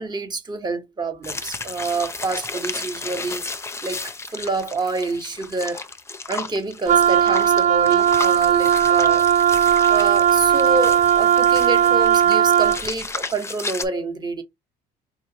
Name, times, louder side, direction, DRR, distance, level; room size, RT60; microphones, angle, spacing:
voice 1, 0.0-3.5 3.8-5.9 6.3-9.3 9.9-14.4, right 3 dB, 25° right, 1.3 m, -27 dB
sound 1, 1.2-13.9, left 3 dB, 15° left, 0.6 m, -33 dB
Wind instrument woodwind instrument, 6.9-12.9, right 9 dB, 45° right, 0.5 m, -17 dB
4.9 x 3.0 x 2.8 m
cardioid pair, 110°, 17 cm